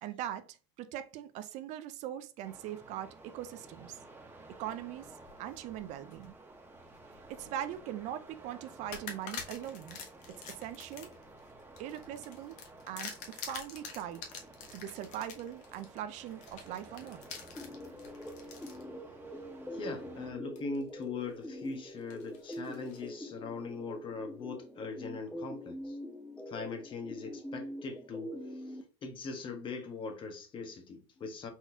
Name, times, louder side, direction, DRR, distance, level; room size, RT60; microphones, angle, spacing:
voice 1, 0.0-4.0 4.6-5.1 5.4-6.3 7.3-10.0 10.4-11.1 11.8-12.6 12.9-14.3 14.7-17.2, right 11 dB, 55° right, 0.5 m, -41 dB
sound 1, 2.4-20.3, right 2 dB, 15° right, 1.4 m, -53 dB
sound 2, 5.0-6.3 6.8-7.8 8.2-8.4 8.9-18.8 19.4-19.5 20.6-21.0 21.4-23.1, left 6 dB, 55° left, 1.3 m, -47 dB
sound 3, 17.5-28.8, equal, 5° left, 0.5 m, -44 dB
voice 2, 19.7-26.0 26.5-28.4 29.0-31.5, left 4 dB, 35° left, 1.3 m, -40 dB
4.4 x 3.9 x 2.8 m
supercardioid pair, 100°, 15 cm